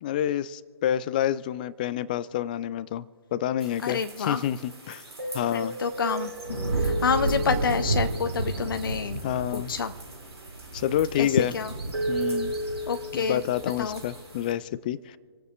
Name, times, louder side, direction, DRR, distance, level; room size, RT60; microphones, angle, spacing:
voice 1, 0.0-3.0 3.3-5.0 5.3-5.8 9.2-9.7 10.7-11.5 12.1-12.6 13.1-15.2, left 11 dB, 20° left, 19 dB, 0.3 m, -28 dB
sound 1, 3.6-14.5, right 2 dB, 70° right, 4.2 m, -32 dB
voice 2, 3.8-4.4 5.5-9.2 9.5-9.9 11.2-11.7 12.9-13.4 13.8-14.0, left 6 dB, 50° left, 9 dB, 0.7 m, -28 dB
27.5 x 9.3 x 3.2 m, 2.1 s
figure-of-eight pair, 135°, 14 cm